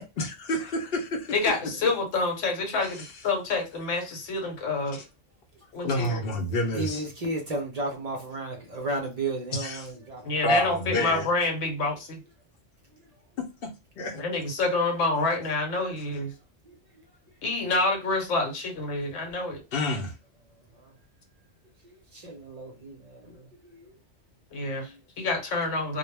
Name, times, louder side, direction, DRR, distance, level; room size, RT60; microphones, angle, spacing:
voice 1, 0.0-1.3 3.0-3.1 4.9-5.0 5.8-7.0 9.5-9.9 10.4-11.3 14.0-14.2 19.7-20.1, left 1 dB, 55° left, 0.8 m, -28 dB
voice 2, 1.3-5.0 5.7-6.2 10.2-12.2 14.1-16.3 17.4-19.6 24.5-26.0, left 3 dB, 75° left, 1.1 m, -28 dB
voice 3, 6.7-10.5 16.7-16.8 20.7-21.0 21.8-24.0 24.9-25.0, right 2 dB, 50° right, 0.5 m, -34 dB
2.3 x 2.1 x 3.2 m
omnidirectional pair, 1.3 m